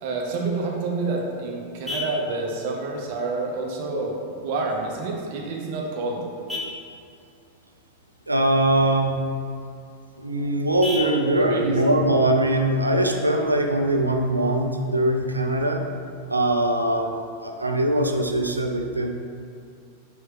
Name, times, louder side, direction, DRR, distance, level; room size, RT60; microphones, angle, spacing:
voice 1, 0.0-4.2 4.4-6.2 11.0-11.7, right 3 dB, 50° right, -1 dB, 0.7 m, -28 dB
Vehicle horn car horn honking, 0.6-13.6, left 3 dB, 10° right, 0.9 m, -40 dB
voice 2, 8.3-9.2 10.2-15.8 16.3-17.1 17.4-19.1, right 1 dB, 85° right, 3 dB, 0.3 m, -22 dB
4.5 x 3.2 x 3.5 m, 2.4 s
figure-of-eight pair, 90°, 0 cm